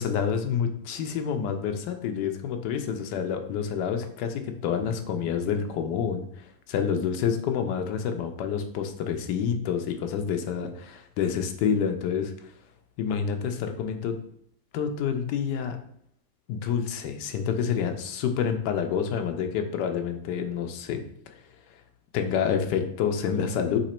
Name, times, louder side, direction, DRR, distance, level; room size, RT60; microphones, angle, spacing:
voice 1, 0.0-12.3 13.0-14.2 14.7-15.8 16.5-21.4 22.1-23.8, left 7 dB, 80° left, 6 dB, 1.2 m, -28 dB
3.9 x 2.9 x 4.2 m, 0.68 s
omnidirectional pair, 1.9 m